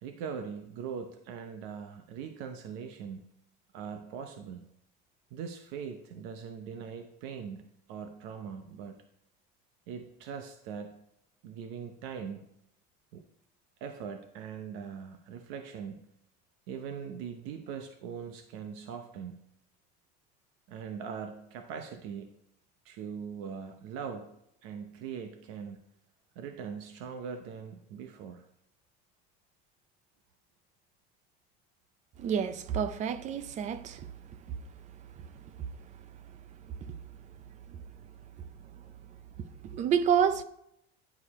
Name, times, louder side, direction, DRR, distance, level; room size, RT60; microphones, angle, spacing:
voice 1, 0.0-3.2 3.7-4.7 5.3-7.6 7.9-9.0 9.9-11.0 11.4-12.5 13.1-13.2 13.8-16.1 16.7-19.4 20.7-22.3 22.8-24.4 24.6-25.8 26.3-28.5, right 7 dB, 75° right, 0.8 m, -41 dB
voice 2, 32.2-34.1 39.7-40.4, right 8 dB, 35° right, 0.5 m, -28 dB
10.5 x 4.9 x 4.3 m
cardioid pair, 160°, 21 cm